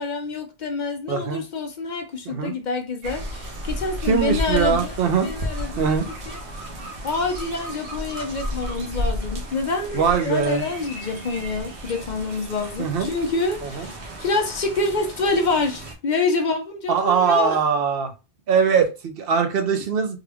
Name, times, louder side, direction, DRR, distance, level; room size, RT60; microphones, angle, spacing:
voice 1, 0.0-4.9 5.2-5.9 6.3-6.4 7.0-17.6, left 3 dB, 50° left, 0.7 m, -27 dB
voice 2, 1.1-1.4 2.3-2.5 4.0-5.3 5.8-6.1 9.9-10.6 12.8-13.1 13.6-13.9 16.9-18.1 18.5-20.2, right 6 dB, 65° right, 0.9 m, -21 dB
sound 1, 3.0-15.9, equal, 80° right, 1.1 m, -33 dB
3.7 x 2.3 x 3.4 m
omnidirectional pair, 1.1 m